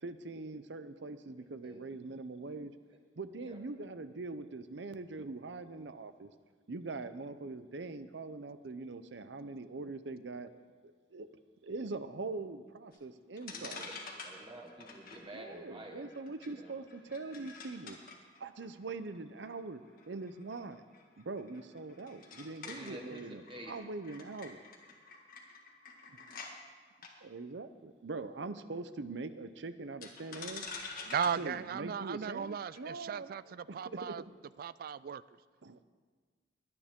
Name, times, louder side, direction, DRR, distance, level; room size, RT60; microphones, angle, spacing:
voice 1, 0.0-2.7 3.2-6.3 6.7-10.5 10.8-11.3 11.6-13.9 15.3-18.0 18.4-19.8 20.1-20.8 21.2-24.6 27.2-30.6 31.4-34.3 35.6-35.8, right 3 dB, 75° right, 12 dB, 0.7 m, -42 dB
sound 1, 12.9-13.0 13.4-26.5 26.9-27.1 30.0-32.8, left 4 dB, 55° left, 1.8 m, -49 dB
voice 2, 13.5-16.1 16.4-16.7 22.6-23.7, right 1 dB, 30° right, 1 dB, 1.5 m, -49 dB
voice 3, 31.0-34.2 34.6-35.2, right 7 dB, 55° right, 18 dB, 0.3 m, -36 dB
22.0 x 9.7 x 3.7 m, 1.5 s
head